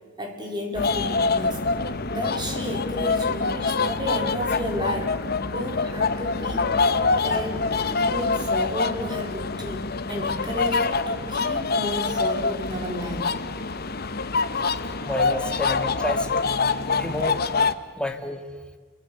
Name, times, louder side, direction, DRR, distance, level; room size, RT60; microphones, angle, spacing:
voice 1, 0.2-1.6 2.1-5.1 5.5-6.8 7.2-13.3, equal, 25° right, 2 dB, 4.6 m, -32 dB
sound 1, 0.7-17.7, left 4 dB, 55° left, 1.0 m, -25 dB
voice 2, 15.0-16.5 17.0-17.5 18.0-18.4, left 1 dB, 5° left, 5 dB, 1.9 m, -30 dB
29.5 x 24.0 x 6.8 m, 1.5 s
head